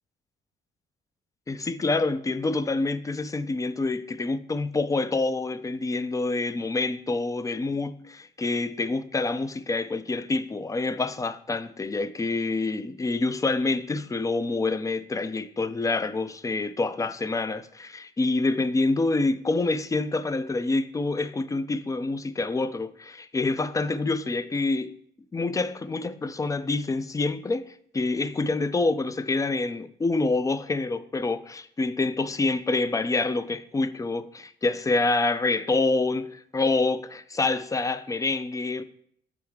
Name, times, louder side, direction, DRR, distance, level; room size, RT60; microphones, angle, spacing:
voice 1, 1.5-25.0 25.3-38.8, left 3 dB, 15° left, 0.3 m, -27 dB
7.0 x 3.5 x 4.8 m
cardioid pair, 90°, 20 cm